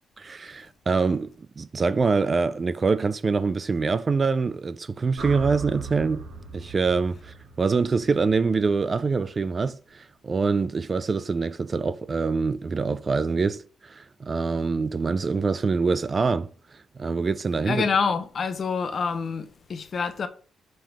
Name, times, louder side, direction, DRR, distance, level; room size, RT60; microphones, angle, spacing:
voice 1, 0.2-6.3 6.5-16.5 17.0-17.8, right 4 dB, 35° right, 0.4 m, -25 dB
sound 1, 5.2-9.4, right 4 dB, 80° right, 2.3 m, -39 dB
voice 2, 17.7-20.3, left 5 dB, 45° left, 0.8 m, -26 dB
5.6 x 5.2 x 3.4 m
cardioid pair, 110°, 0 cm